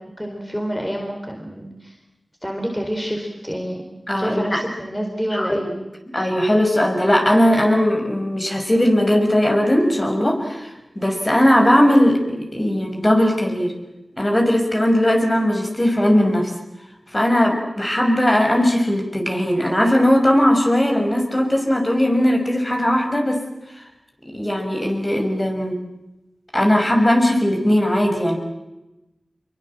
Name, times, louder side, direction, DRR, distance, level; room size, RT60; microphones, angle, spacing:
voice 1, 0.2-2.0 2.4-3.8 4.2-5.7, equal, 5° left, 2 dB, 4.6 m, -28 dB
voice 2, 4.1-4.6 5.3-5.7 6.1-10.7 11.0-13.7 14.2-16.5 17.1-23.4 23.7-23.8 24.3-25.7 26.5-28.4, equal, 25° left, 3 dB, 5.9 m, -18 dB
25.5 x 23.0 x 7.6 m, 0.96 s
cardioid pair, 45°, 0 cm